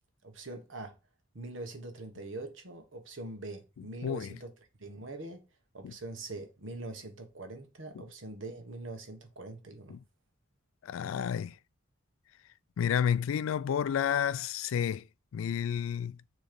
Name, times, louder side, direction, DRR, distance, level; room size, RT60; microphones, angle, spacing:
voice 1, 0.2-0.9 1.3-4.5 4.8-5.4 5.7-10.0, right 2 dB, 75° right, 1.3 m, -43 dB
voice 2, 4.0-4.3 5.8-5.9 7.9-8.0 9.9-10.0 10.8-11.5 12.8-15.0 15.3-16.2, left 8 dB, 85° left, 0.3 m, -30 dB
6.3 x 3.1 x 5.1 m
head